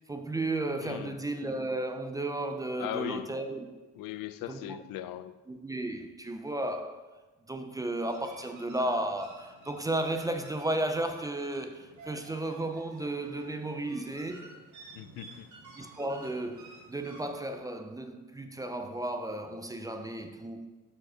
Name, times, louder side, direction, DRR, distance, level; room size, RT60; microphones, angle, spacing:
voice 1, 0.1-3.7 4.5-4.8 5.5-7.1 7.5-14.5 15.8-20.7, right 1 dB, 10° right, 0.3 m, -34 dB
voice 2, 0.8-1.2 2.8-3.3 3.9-5.3 15.0-15.5, left 12 dB, 85° left, 0.5 m, -38 dB
sound 1, 7.9-17.6, right 3 dB, 60° right, 1.6 m, -52 dB
6.5 x 4.9 x 5.4 m
cardioid pair, 150°, 33 cm